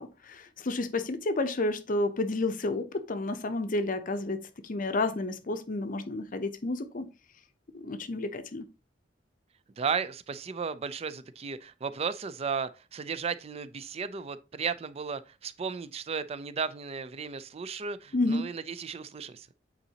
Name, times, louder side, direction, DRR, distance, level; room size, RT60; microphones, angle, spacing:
voice 1, 0.0-7.1 7.7-8.7 18.1-18.5, left 2 dB, 45° left, 0.6 m, -31 dB
voice 2, 9.8-19.5, right 5 dB, 35° right, 0.4 m, -34 dB
8.2 x 4.1 x 2.8 m
head